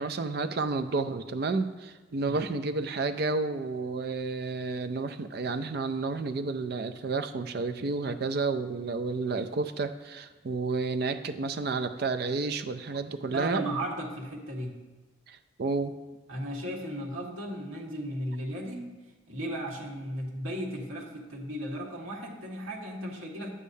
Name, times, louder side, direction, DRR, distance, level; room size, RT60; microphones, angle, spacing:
voice 1, 0.0-13.8 15.3-15.9, right 3 dB, 50° right, 10 dB, 0.4 m, -31 dB
voice 2, 13.3-14.8 16.3-18.9 19.3-23.5, right 1 dB, 90° right, -2 dB, 1.7 m, -35 dB
11.0 x 8.2 x 2.7 m, 1.2 s
head